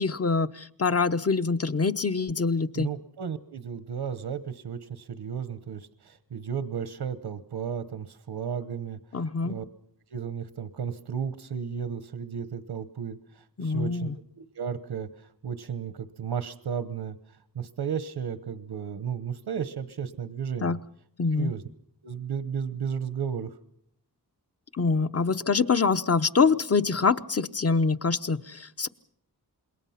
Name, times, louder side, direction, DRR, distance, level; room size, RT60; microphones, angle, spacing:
voice 1, 0.0-2.9 9.1-9.6 13.6-14.2 20.6-20.8 21.2-21.5 24.7-28.9, left 4 dB, 40° left, 11 dB, 0.9 m, -25 dB
voice 2, 2.7-9.7 10.1-17.2 17.5-20.8 21.3-21.6 22.0-23.5, right 7 dB, 90° right, 12 dB, 1.1 m, -34 dB
27.5 x 22.0 x 5.8 m, 0.68 s
wide cardioid pair, 100°, 39 cm